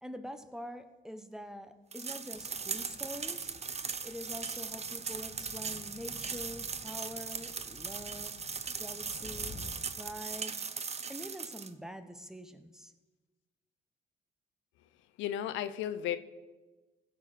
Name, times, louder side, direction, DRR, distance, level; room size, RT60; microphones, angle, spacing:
voice 1, 0.0-3.5 4.0-8.4 8.7-9.5 10.0-10.5 11.1-12.9, equal, 5° right, 1.0 m, -45 dB
sound 1, 1.9-11.7, right 5 dB, 35° right, 0.7 m, -39 dB
sound 2, 2.3-9.7, left 4 dB, 55° left, 1.7 m, -53 dB
voice 2, 15.2-16.2, left 11 dB, 80° left, 0.6 m, -34 dB
16.0 x 6.1 x 5.0 m
supercardioid pair, 60°, 19 cm